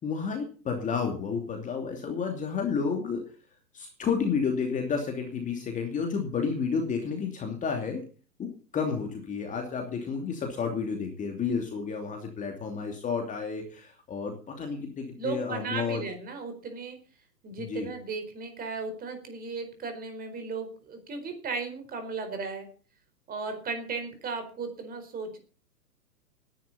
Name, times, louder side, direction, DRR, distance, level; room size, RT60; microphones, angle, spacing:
voice 1, 0.0-3.2 3.7-8.0 8.4-16.0 17.6-17.9, left 5 dB, 15° left, 3 dB, 2.8 m, -31 dB
voice 2, 15.1-17.0 17.4-22.7 23.3-25.4, right 4 dB, 15° right, 7 dB, 4.6 m, -36 dB
19.5 x 11.0 x 4.2 m, 0.39 s
figure-of-eight pair, 125°, 50 cm